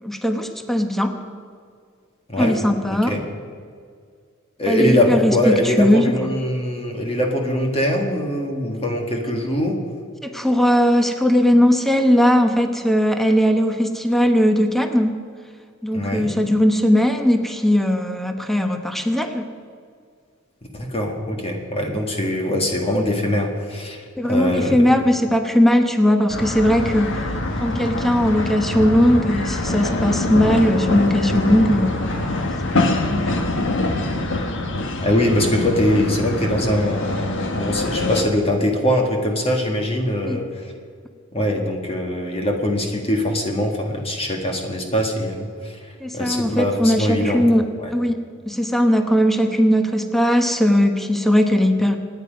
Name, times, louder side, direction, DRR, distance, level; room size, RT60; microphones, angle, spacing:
voice 1, 0.0-1.1 2.4-3.1 4.7-6.3 10.2-15.1 15.8-19.4 24.2-27.2 27.6-33.5 40.2-40.4 46.0-47.6 47.9-48.2 48.5-52.0, equal, ahead, 5 dB, 1.0 m, -19 dB
voice 2, 4.6-9.8 15.9-16.3 20.7-24.8 35.0-40.7 41.3-47.5 47.8-47.9, left 1 dB, 30° left, 2 dB, 1.8 m, -22 dB
sound 1, 26.3-38.2, left 2 dB, 65° left, 1.5 m, -24 dB
26.0 x 9.6 x 5.2 m, 2.1 s
head